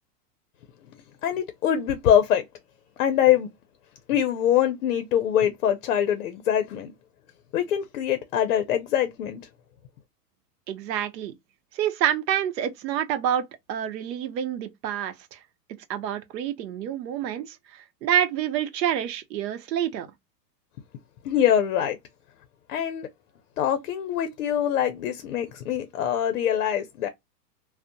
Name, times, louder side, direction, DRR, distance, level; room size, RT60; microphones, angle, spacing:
voice 1, 1.2-2.4 3.0-3.5 4.1-6.9 7.5-9.4 21.2-22.0 22.7-23.1 23.6-27.1, left 10 dB, 55° left, 0.5 m, -23 dB
voice 2, 10.7-11.3 11.7-15.4 15.9-20.1, right 10 dB, 90° right, 0.7 m, -28 dB
2.6 x 2.0 x 2.5 m
supercardioid pair, 170°, 49 cm